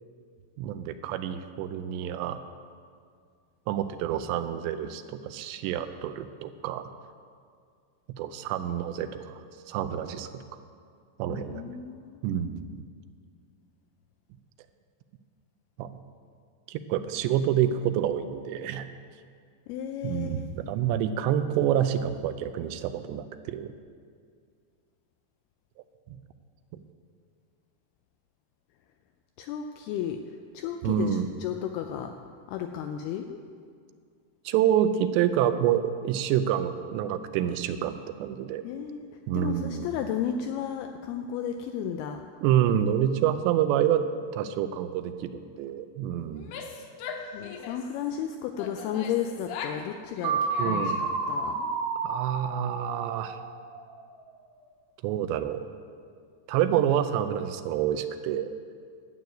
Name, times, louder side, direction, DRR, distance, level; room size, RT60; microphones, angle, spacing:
voice 1, 0.6-2.4 3.7-6.8 8.2-10.4 11.2-11.7 12.2-12.8 15.8-15.9 16.7-18.9 20.0-23.7 26.1-26.2 30.8-31.3 34.5-38.6 39.3-39.9 42.4-44.0 44.3-46.5 50.6-51.0 52.0-53.4 55.0-55.6 56.5-58.5, right 10 dB, 85° right, 10 dB, 2.7 m, -28 dB
voice 2, 11.3-12.4 19.7-20.4 29.4-30.2 30.5-32.1 32.5-33.4 38.6-39.1 39.3-42.2 47.3-51.7, left 9 dB, 90° left, 6 dB, 2.2 m, -33 dB
Female speech woman speaking / Yell, 46.3-48.0 48.6-49.9 50.2-51.1, left 5 dB, 75° left, 2.3 m, -40 dB
sound 1, 50.2-54.1, right 4 dB, 65° right, 2.0 m, -31 dB
11.5 x 9.3 x 7.8 m, 2.2 s
omnidirectional pair, 5.1 m